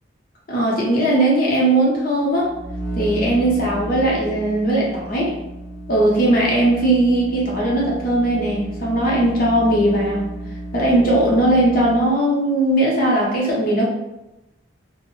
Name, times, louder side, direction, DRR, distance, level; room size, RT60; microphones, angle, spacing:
voice 1, 0.5-2.5 2.9-5.3 5.9-10.3 10.7-13.9, right 1 dB, 45° left, -4 dB, 0.8 m, -18 dB
sound 1, 2.3-12.2, right 1 dB, 40° right, 0.5 m, -33 dB
2.5 x 2.1 x 3.1 m, 0.94 s
head